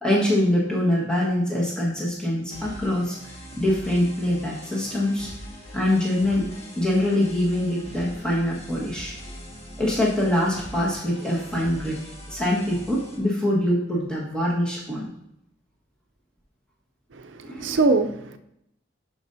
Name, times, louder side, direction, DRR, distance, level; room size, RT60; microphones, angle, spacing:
voice 1, 0.0-5.3 5.7-6.5 6.8-9.2 9.8-12.0 12.3-15.0 17.4-17.8, left 1 dB, 5° left, -5 dB, 1.5 m, -24 dB
sound 1, 2.5-13.2, equal, 30° left, 1.6 m, -42 dB
voice 2, 17.1-18.4, right 3 dB, 75° right, 8 dB, 0.6 m, -23 dB
12.5 x 5.2 x 2.7 m, 0.80 s
head